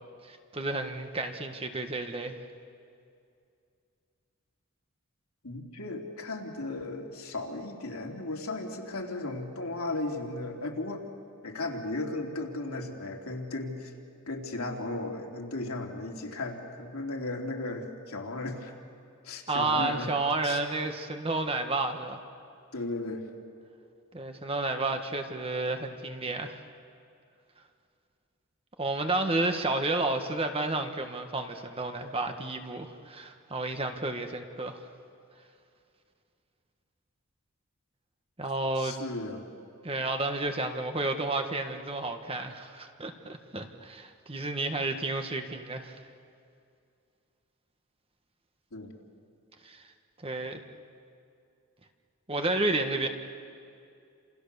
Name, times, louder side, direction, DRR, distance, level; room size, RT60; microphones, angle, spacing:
voice 1, 0.2-2.4 19.5-22.2 24.1-26.6 28.8-34.8 38.4-39.0 39.8-46.0 49.6-49.8 50.2-50.6 52.3-53.1, right 2 dB, 25° right, 5 dB, 1.5 m, -31 dB
voice 2, 5.4-11.1 11.4-13.9 14.3-18.7 19.2-20.1 20.4-20.6 22.7-23.3 38.8-39.4 48.7-48.9, left 2 dB, 75° left, 1 dB, 3.2 m, -35 dB
30.0 x 28.0 x 6.9 m, 2.4 s
head